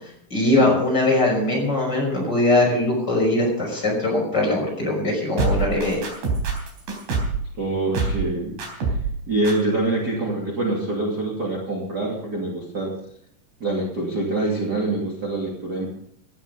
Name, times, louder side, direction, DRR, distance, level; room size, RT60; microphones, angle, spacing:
voice 1, 0.3-6.0, left 2 dB, 25° left, -1 dB, 6.3 m, -21 dB
sound 1, 5.4-7.5 7.9-8.3 8.6-9.2 9.4-9.5, right 3 dB, 65° right, 5.6 m, -24 dB
voice 2, 7.5-9.0 9.3-12.9 13.6-15.9, right 2 dB, 30° right, -3 dB, 2.6 m, -25 dB
17.0 x 11.0 x 5.5 m, 0.72 s
omnidirectional pair, 4.6 m